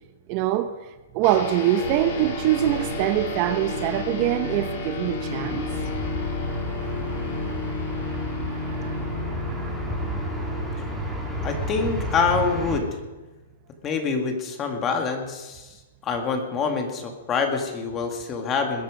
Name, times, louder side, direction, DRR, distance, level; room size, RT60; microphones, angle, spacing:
voice 1, 0.3-0.8 1.1-5.7 8.5-9.2 9.6-9.7, right 12 dB, 35° right, 10 dB, 0.8 m, -24 dB
sound 1, 1.2-13.4, left 2 dB, 50° left, 3.6 m, -33 dB
sound 2, 1.8-10.7, left 5 dB, 85° left, 5.6 m, -38 dB
sound 3, 5.5-12.8, right 1 dB, ahead, 3.1 m, -32 dB
voice 2, 11.4-12.9 13.8-15.7 16.0-18.8, left 5 dB, 20° left, 4 dB, 2.4 m, -26 dB
20.5 x 10.5 x 5.2 m, 1.1 s
hypercardioid pair, 145°, 0 cm